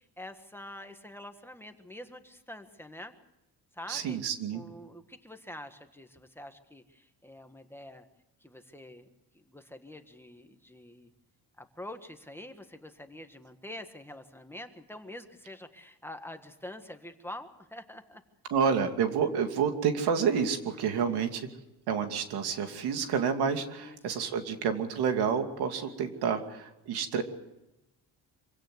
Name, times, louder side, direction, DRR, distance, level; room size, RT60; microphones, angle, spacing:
voice 1, 0.0-3.1 3.7-4.2 4.5-8.1 8.4-9.1 9.3-11.1 11.6-18.2 20.7-21.2 23.6-24.3 25.8-26.4, left 1 dB, 5° left, 6 dB, 1.6 m, -46 dB
voice 2, 3.9-4.6 18.5-21.5 21.9-27.2, right 6 dB, 85° right, 6 dB, 2.7 m, -29 dB
25.5 x 17.0 x 8.0 m, 0.96 s
cardioid pair, 125°, 38 cm